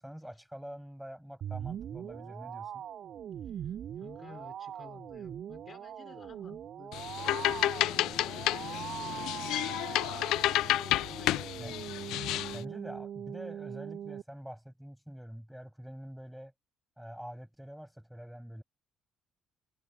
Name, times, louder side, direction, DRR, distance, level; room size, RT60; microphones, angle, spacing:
voice 1, 0.0-2.8 11.6-11.7 12.5-16.5 17.0-18.6, equal, ahead, 7.8 m, -46 dB
sound 1, 1.4-14.2, right 9 dB, 55° right, 5.7 m, -41 dB
voice 2, 3.5-7.0 7.4-9.3 11.0-11.6, left 5 dB, 30° left, 6.1 m, -53 dB
sound 2, 6.9-12.6, left 15 dB, 90° left, 0.4 m, -30 dB
cardioid pair, 135°, 0 cm